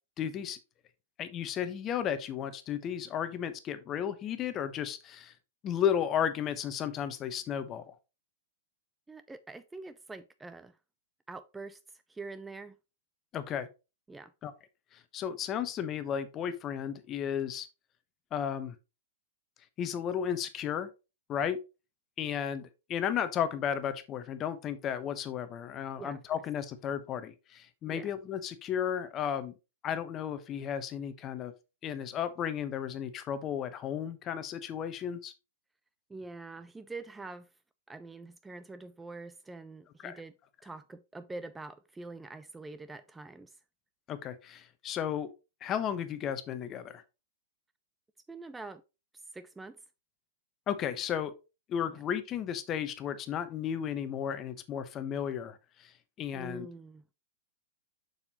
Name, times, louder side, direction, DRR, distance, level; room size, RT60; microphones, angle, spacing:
voice 1, 0.2-0.6 1.2-5.3 5.6-7.9 13.3-13.7 14.4-14.5 14.9-17.7 18.3-18.7 19.8-20.9 21.3-21.6 22.2-29.5 29.8-31.5 31.8-35.3 40.0-40.2 44.1-45.3 45.6-47.0 50.7-51.3 51.7-55.9 56.2-56.7, left 9 dB, 30° left, 1.1 m, -34 dB
voice 2, 9.1-10.8 11.3-11.8 12.1-12.8 14.1-14.3 26.0-26.2 27.9-28.1 36.1-37.5 37.9-40.3 40.6-43.6 48.3-48.8 49.3-49.8 56.3-57.0, right 3 dB, 10° right, 0.4 m, -45 dB
7.0 x 6.7 x 3.0 m
figure-of-eight pair, 110°, 0 cm